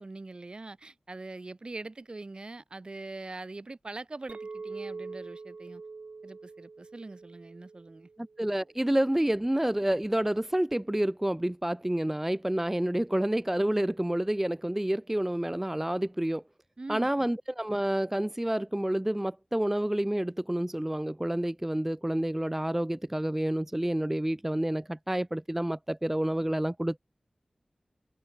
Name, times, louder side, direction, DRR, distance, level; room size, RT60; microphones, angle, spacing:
voice 1, 0.0-5.8 6.2-8.1 16.8-17.3, right 2 dB, 50° right, 2.2 m, -43 dB
Chink clink, 4.3-8.8, right 4 dB, 75° right, 2.7 m, -44 dB
voice 2, 8.2-16.4 16.9-27.0, right 1 dB, 15° right, 0.4 m, -29 dB
wide cardioid pair, 50°, 2 cm